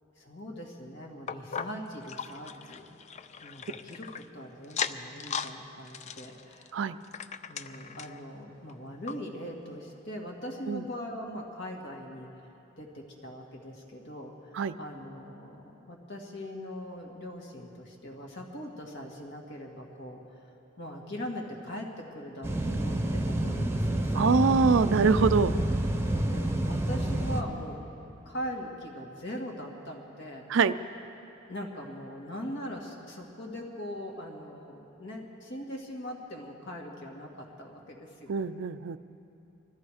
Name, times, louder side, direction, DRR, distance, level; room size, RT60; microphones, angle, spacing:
voice 1, 0.2-2.9 3.4-6.7 7.5-12.3 12.8-20.2 20.8-24.8 26.0-27.8 28.2-30.5 31.5-38.4, equal, 60° left, 0 dB, 2.0 m, -41 dB
sound 1, 1.3-4.3 4.6-5.5 5.9-8.2 8.7-8.8 9.1-9.2 9.8-9.9, left 7 dB, 35° left, 0.4 m, -38 dB
sound 2, 22.4-27.4, right 1 dB, 10° right, 0.9 m, -28 dB
voice 2, 24.1-25.5 30.5-30.7 38.3-39.0, right 5 dB, 65° right, 13 dB, 0.4 m, -24 dB
20.5 x 14.0 x 5.0 m, 3.0 s
head